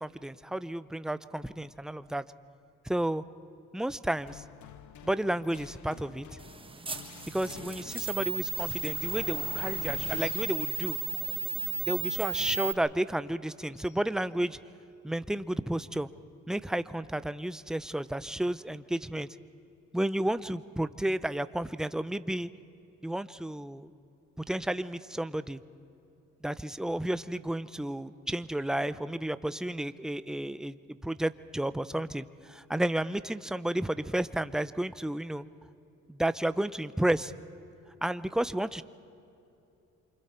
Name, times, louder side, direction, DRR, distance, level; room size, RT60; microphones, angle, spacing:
voice 1, 0.0-2.2 2.8-3.2 3.7-4.4 5.0-6.4 7.3-11.0 11.9-14.6 15.0-16.1 16.5-19.3 19.9-22.5 23.0-23.9 24.4-25.6 26.4-35.5 36.1-37.3 38.0-38.8, right 1 dB, ahead, 14 dB, 0.5 m, -32 dB
sound 1, 4.3-14.0, left 9 dB, 70° left, 1.0 m, -48 dB
sound 2, 6.4-12.7, right 4 dB, 15° right, 1.2 m, -34 dB
27.5 x 25.5 x 4.4 m, 2.7 s
cardioid pair, 90°, 30 cm